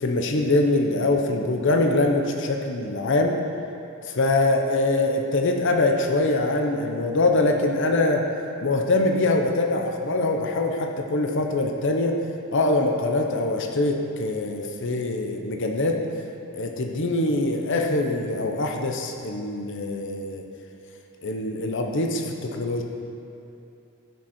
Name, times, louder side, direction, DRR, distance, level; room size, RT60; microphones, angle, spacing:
voice 1, 0.0-3.4 4.1-8.2 8.6-12.2 12.5-16.0 16.5-20.4 21.2-22.8, left 2 dB, 60° left, 2 dB, 0.8 m, -23 dB
15.0 x 6.3 x 4.3 m, 2.7 s
head